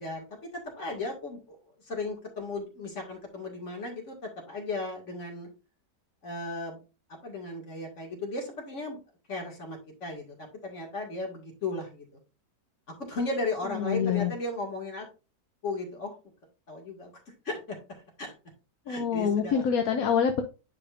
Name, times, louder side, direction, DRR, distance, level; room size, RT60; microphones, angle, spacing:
voice 1, 0.0-1.6 1.9-5.5 6.2-6.8 7.2-9.0 9.3-12.0 13.1-15.1 15.6-16.1 16.7-17.1 17.5-17.8 18.2-18.3 18.9-19.7, left 2 dB, 45° left, 0 dB, 2.4 m, -35 dB
voice 2, 13.7-14.3 18.9-20.4, left 7 dB, 65° left, 5 dB, 1.1 m, -26 dB
9.8 x 5.0 x 2.5 m, 0.30 s
omnidirectional pair, 1.8 m